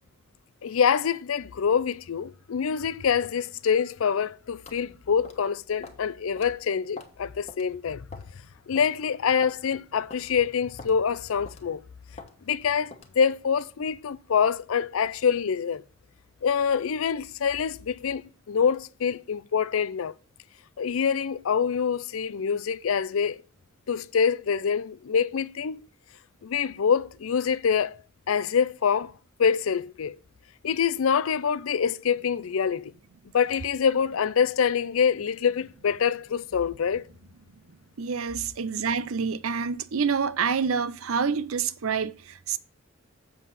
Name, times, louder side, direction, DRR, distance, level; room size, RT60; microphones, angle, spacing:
voice 1, 0.6-8.1 8.7-11.8 12.5-15.8 16.4-18.2 18.5-20.1 20.8-23.4 23.9-25.9 26.4-27.9 28.3-29.1 29.4-30.2 30.6-32.9 33.3-37.0, left 7 dB, 75° left, 0.5 m, -25 dB
sound 1, 4.7-4.8 5.2-5.5 5.8-6.0 6.4-6.5 7.0-7.2 7.5-7.6 8.1-8.4 8.8-8.9 9.4-9.6 10.1-10.3 10.8-11.0 11.5-11.7 12.2-12.3 12.9-13.1, left 3 dB, 30° left, 1.2 m, -44 dB
voice 2, 38.0-42.6, right 6 dB, 85° right, 0.6 m, -27 dB
7.3 x 7.2 x 4.0 m
head